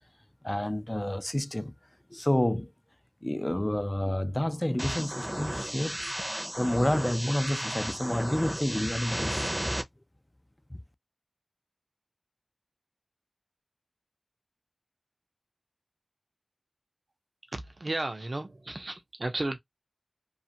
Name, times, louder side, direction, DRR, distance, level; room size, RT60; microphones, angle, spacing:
voice 1, 0.4-1.7 2.1-2.7 3.2-9.7 10.7-10.8, left 1 dB, 25° left, 0.3 m, -29 dB
sound 1, 4.8-9.8, equal, 25° right, 0.6 m, -34 dB
voice 2, 17.5-19.6, right 2 dB, 75° right, 0.7 m, -34 dB
2.5 x 2.4 x 2.8 m
wide cardioid pair, 45°, 0 cm